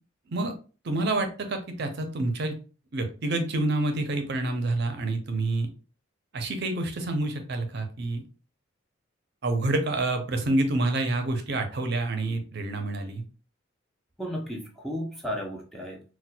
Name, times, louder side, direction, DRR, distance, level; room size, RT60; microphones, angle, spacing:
voice 1, 0.8-2.5 2.9-5.7 6.3-8.2 9.4-13.2, right 2 dB, 55° right, 6 dB, 0.5 m, -28 dB
voice 2, 14.2-16.1, equal, ahead, -1 dB, 0.4 m, -34 dB
4.1 x 2.1 x 2.2 m, 0.36 s
head